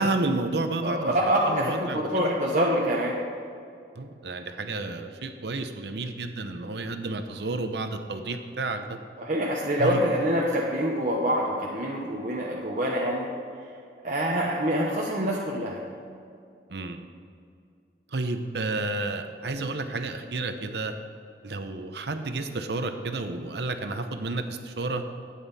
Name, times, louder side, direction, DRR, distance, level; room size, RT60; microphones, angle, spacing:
voice 1, 0.0-2.4 3.9-9.0 9.8-10.0 16.7-17.0 18.1-21.0 21.4-25.0, right 2 dB, 70° right, 7 dB, 0.8 m, -31 dB
voice 2, 0.8-3.1 9.2-13.3 14.0-15.8, equal, 45° right, -4 dB, 1.1 m, -26 dB
12.5 x 9.2 x 4.2 m, 2.4 s
head